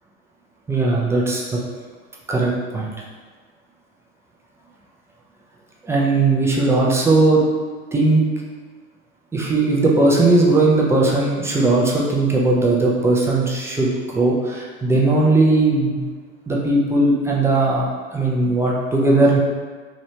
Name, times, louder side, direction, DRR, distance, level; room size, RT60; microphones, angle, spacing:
voice 1, 0.7-1.6 2.3-2.9 5.8-7.4 7.9-8.2 9.3-16.0 16.5-17.9 18.1-19.4, right 2 dB, 5° right, -3 dB, 0.4 m, -18 dB
3.0 x 3.0 x 2.7 m, 1.5 s
figure-of-eight pair, 80°, 41 cm